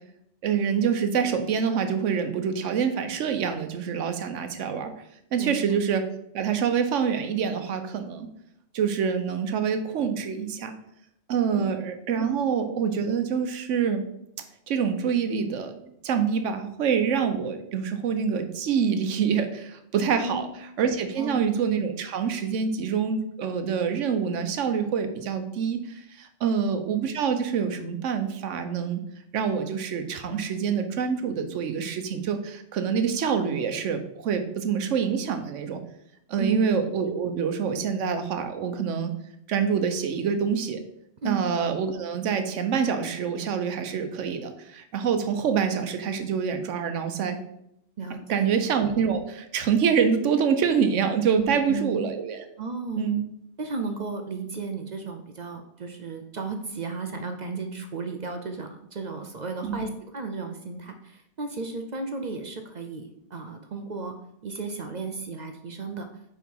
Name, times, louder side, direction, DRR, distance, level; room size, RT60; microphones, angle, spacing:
voice 1, 0.4-4.9 5.3-6.1 6.3-8.3 8.7-10.7 11.3-14.0 14.7-20.5 20.8-29.0 29.3-35.8 36.3-39.1 39.5-40.8 41.2-47.4 48.3-52.4 53.0-53.2 59.6-59.9, right 7 dB, 85° right, 7 dB, 1.1 m, -26 dB
voice 2, 21.2-21.5 26.4-26.7 36.4-36.6 41.2-41.4 48.0-48.5 51.4-52.1 52.6-53.2 53.6-64.1 64.4-66.1, right 4 dB, 50° right, 5 dB, 0.6 m, -34 dB
4.7 x 4.6 x 5.3 m, 0.76 s
omnidirectional pair, 1.2 m